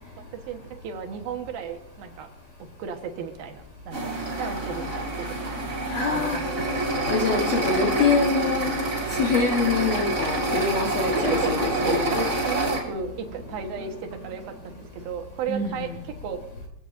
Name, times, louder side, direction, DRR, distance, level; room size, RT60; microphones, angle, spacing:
voice 1, 0.3-2.3 2.6-5.6 6.1-6.5 11.1-16.4, right 7 dB, 70° right, 5 dB, 2.9 m, -34 dB
sound 1, 3.9-12.8, right 1 dB, 25° right, 2.7 m, -27 dB
voice 2, 5.9-6.4 7.1-8.7 9.1-12.2 15.5-15.9, left 4 dB, 65° left, 1 dB, 1.7 m, -25 dB
sound 2, 12.1-15.4, right 2 dB, 5° left, 4.8 m, -47 dB
22.5 x 16.0 x 2.6 m, 0.79 s
omnidirectional pair, 4.8 m